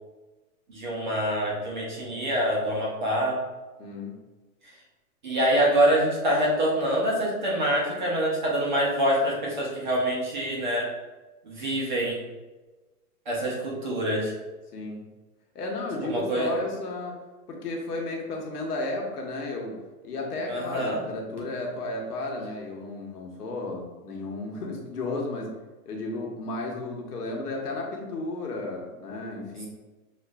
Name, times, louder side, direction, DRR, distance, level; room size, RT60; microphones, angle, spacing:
voice 1, 0.7-3.4 5.2-10.9 11.4-12.2 13.3-14.3 16.0-16.6 20.5-21.0, right 1 dB, 30° right, -3 dB, 0.7 m, -25 dB
voice 2, 3.8-4.1 14.7-15.0 15.5-17.2 17.5-19.8 20.0-25.5 25.8-29.7, left 2 dB, 80° left, 0 dB, 1.2 m, -33 dB
6.3 x 2.5 x 2.3 m, 1.2 s
hypercardioid pair, 175°, 45 cm